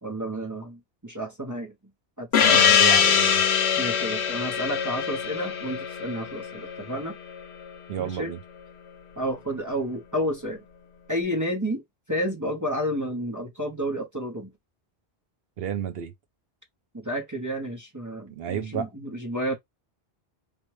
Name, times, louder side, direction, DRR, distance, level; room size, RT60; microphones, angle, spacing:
voice 1, 0.0-1.7 2.2-2.8 3.8-7.2 8.0-8.3 9.2-10.6 11.1-11.8 12.1-14.5 16.9-19.5, equal, 20° right, 0.6 m, -31 dB
Gong, 2.3-7.4, left 7 dB, 75° left, 1.0 m, -22 dB
voice 2, 2.4-3.4 7.9-8.4 15.6-16.1 18.3-18.9, right 8 dB, 65° right, 0.9 m, -31 dB
3.4 x 2.1 x 3.1 m
omnidirectional pair, 1.1 m